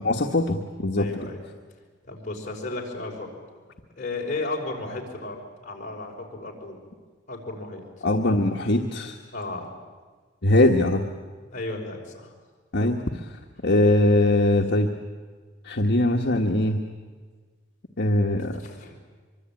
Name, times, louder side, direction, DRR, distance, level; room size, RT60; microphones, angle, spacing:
voice 1, 0.0-1.1 8.0-9.2 10.4-11.0 12.7-13.0 13.6-14.9 15.6-16.8 18.0-18.6, left 1 dB, 65° left, 1 dB, 1.4 m, -21 dB
voice 2, 1.0-1.4 2.1-3.3 4.0-6.8 7.3-7.8 9.3-9.7 11.5-12.3 18.6-19.0, left 2 dB, 40° left, -1 dB, 5.4 m, -34 dB
24.5 x 24.0 x 9.0 m, 1.5 s
head